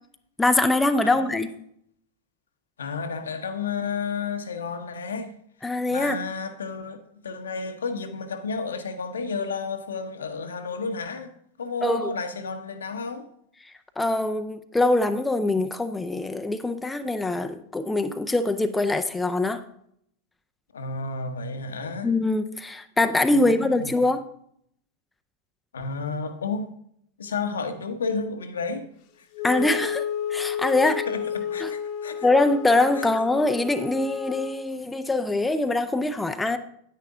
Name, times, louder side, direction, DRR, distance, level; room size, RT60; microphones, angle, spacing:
voice 1, 0.4-1.5 5.6-6.2 11.8-12.1 13.6-19.6 22.0-24.2 29.4-31.0 31.6-31.7 32.2-36.6, left 2 dB, 10° left, 0.6 m, -23 dB
voice 2, 1.0-1.4 2.8-5.3 5.9-11.3 11.6-13.3 20.7-22.1 23.3-23.9 25.7-26.7 27.2-28.9 29.6-29.7 30.8-32.3 33.0-33.1, left 4 dB, 70° left, 1.0 m, -32 dB
Wind instrument woodwind instrument, 29.3-34.6, left 9 dB, 45° left, 1.0 m, -32 dB
9.7 x 9.4 x 3.7 m
figure-of-eight pair, 90°, 0 cm